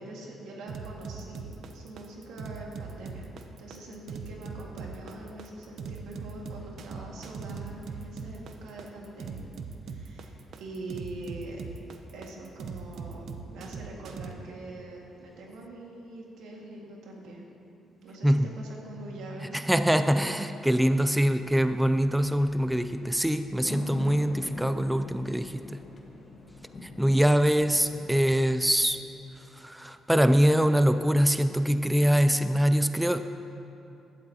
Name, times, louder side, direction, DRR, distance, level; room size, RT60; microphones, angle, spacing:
voice 1, 0.0-9.4 9.8-11.6 12.1-13.2 13.5-17.5 18.0-19.6, right 2 dB, 85° right, -2 dB, 2.0 m, -43 dB
sound 1, 0.7-14.3, right 5 dB, 70° right, 0.8 m, -40 dB
voice 2, 19.5-25.8 26.8-29.0 29.5-33.2, equal, 5° right, 9 dB, 0.4 m, -24 dB
sound 2, 21.4-28.8, left 2 dB, 45° left, 1.6 m, -44 dB
15.5 x 12.0 x 2.9 m, 2.9 s
cardioid pair, 90°, 0 cm